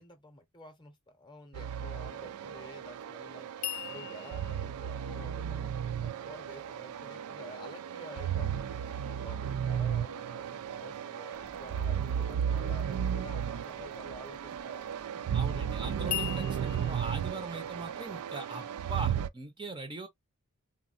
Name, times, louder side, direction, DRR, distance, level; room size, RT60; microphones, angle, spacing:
voice 1, 0.0-3.5 3.8-8.6 9.1-15.1 19.6-19.7, left 1 dB, 20° left, 0.7 m, -51 dB
sound 1, 1.5-19.3, right 8 dB, 80° right, 0.3 m, -34 dB
sound 2, 3.6-6.7 16.1-16.9, left 14 dB, 85° left, 0.4 m, -39 dB
sound 3, 11.3-16.9, right 1 dB, 55° right, 0.7 m, -57 dB
voice 2, 15.3-20.1, right 3 dB, 20° right, 0.5 m, -41 dB
3.5 x 2.0 x 2.4 m
head